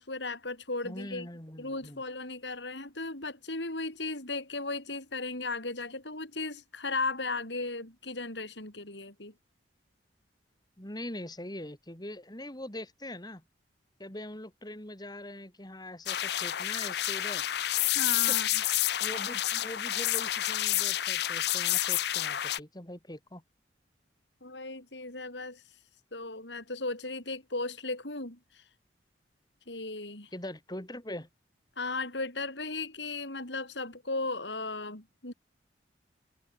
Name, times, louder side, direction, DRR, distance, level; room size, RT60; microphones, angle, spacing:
voice 1, 0.0-1.3 1.6-9.3 17.9-18.6 24.4-25.6 26.1-28.6 29.7-30.3 31.8-35.3, left 3 dB, 80° left, 7.8 m, -36 dB
voice 2, 0.8-2.0 10.8-13.4 14.0-17.4 18.3-18.4 19.0-23.4 30.3-31.3, left 1 dB, 25° left, 3.9 m, -42 dB
sound 1, 16.1-22.6, left 13 dB, 65° left, 0.6 m, -29 dB
head